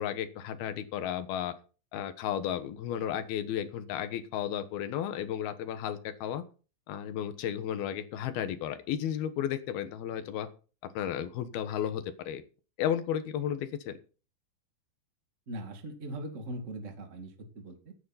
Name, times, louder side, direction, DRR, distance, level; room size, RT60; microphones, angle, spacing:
voice 1, 0.0-1.5 1.9-6.4 6.9-10.5 10.8-12.4 12.8-13.9, left 10 dB, 65° left, 10 dB, 2.8 m, -33 dB
voice 2, 15.5-17.9, right 1 dB, 70° right, 5 dB, 0.7 m, -40 dB
16.5 x 9.4 x 4.2 m, 0.36 s
omnidirectional pair, 5.4 m